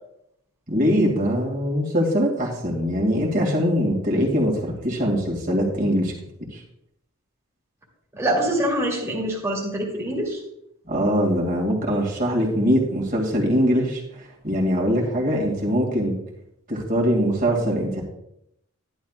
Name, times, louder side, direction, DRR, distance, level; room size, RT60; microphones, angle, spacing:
voice 1, 0.7-6.1 6.5-6.6 10.9-16.2 16.7-18.0, equal, 40° right, -2 dB, 2.4 m, -22 dB
voice 2, 8.2-10.4, right 1 dB, 15° right, -4 dB, 2.4 m, -24 dB
13.0 x 11.0 x 2.5 m, 0.78 s
head